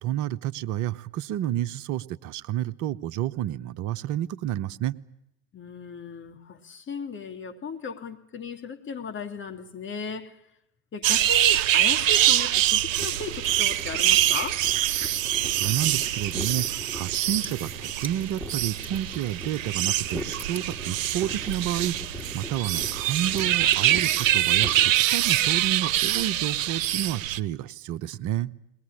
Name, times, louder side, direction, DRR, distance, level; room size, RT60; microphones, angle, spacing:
voice 1, 0.0-4.9 15.4-28.5, right 12 dB, 45° right, 1.0 m, -30 dB
voice 2, 5.5-10.4 10.9-14.7, left 5 dB, 30° left, 2.3 m, -36 dB
sound 1, 11.0-27.4, right 13 dB, 70° right, 0.9 m, -24 dB
sound 2, 12.9-24.9, left 1 dB, 5° left, 3.1 m, -41 dB
22.0 x 19.5 x 9.9 m
hypercardioid pair, 85°, 40 cm